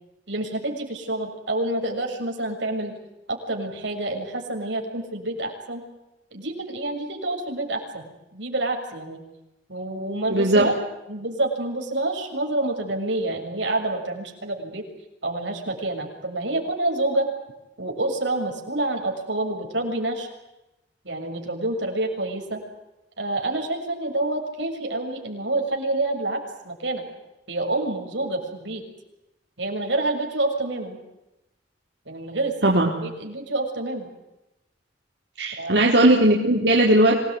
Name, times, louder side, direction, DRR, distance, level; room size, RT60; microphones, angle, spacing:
voice 1, 0.3-3.0 3.3-5.8 6.3-9.2 9.7-10.8 11.1-14.8 15.2-17.3 17.8-20.3 21.0-22.6 23.2-26.4 26.6-27.0 27.5-28.8 29.6-31.0 32.1-32.6 33.0-34.1 35.6-35.8, right 2 dB, 85° right, 3 dB, 7.1 m, -27 dB
voice 2, 10.3-10.6 32.6-32.9 35.4-37.2, right 1 dB, 70° right, -2 dB, 4.2 m, -18 dB
26.5 x 19.5 x 9.8 m, 0.95 s
head